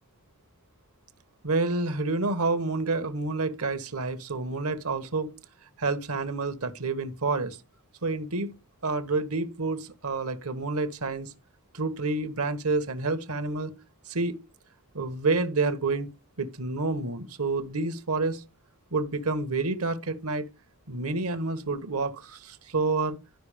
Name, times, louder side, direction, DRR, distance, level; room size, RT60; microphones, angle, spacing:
voice 1, 1.4-5.3 5.8-7.6 8.0-8.5 8.8-11.3 11.7-13.7 14.1-14.4 14.9-16.1 16.4-18.4 18.9-20.4 20.9-23.2, right 3 dB, 75° right, 1.3 m, -28 dB
11.5 x 5.4 x 5.0 m
head